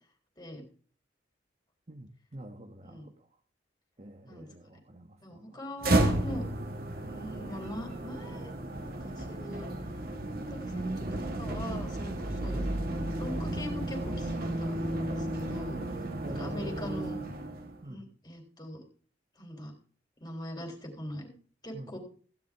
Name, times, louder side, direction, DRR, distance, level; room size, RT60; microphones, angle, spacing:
voice 1, 1.9-3.1 4.0-5.4 12.5-12.7 16.2-16.9 17.8-18.1 21.7-21.9, right 1 dB, 35° right, 5 dB, 1.1 m, -46 dB
voice 2, 5.2-6.5 7.0-8.5 8.8-9.7 10.5-10.9 11.4-12.7 13.2-15.8 16.3-17.2 17.9-18.8 19.4-19.7 20.2-21.3 21.6-22.0, left 1 dB, 20° left, 2 dB, 3.7 m, -42 dB
sound 1, 5.8-17.8, right 1 dB, 55° right, 1.9 m, -33 dB
16.0 x 10.5 x 3.6 m, 0.43 s
head